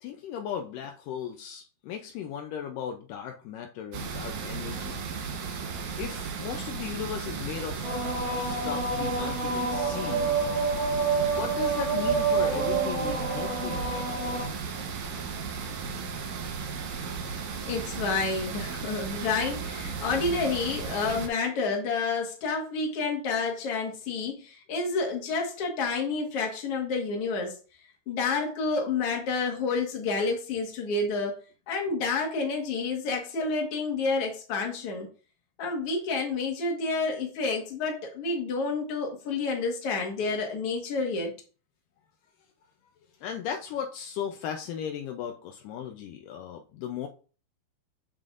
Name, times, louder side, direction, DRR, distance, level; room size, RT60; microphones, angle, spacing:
voice 1, 0.0-5.0 6.0-8.0 8.4-10.3 11.2-14.0 43.2-47.1, left 8 dB, 85° left, 4 dB, 1.9 m, -36 dB
sound 1, 3.9-21.3, right 5 dB, 65° right, 2.0 m, -35 dB
sound 2, 7.8-14.4, right 4 dB, 35° right, 1.1 m, -28 dB
voice 2, 17.6-27.6 28.1-31.3 31.7-35.1 35.6-41.3, left 4 dB, 50° left, 0 dB, 1.9 m, -29 dB
7.3 x 6.8 x 2.5 m, 0.37 s
omnidirectional pair, 4.6 m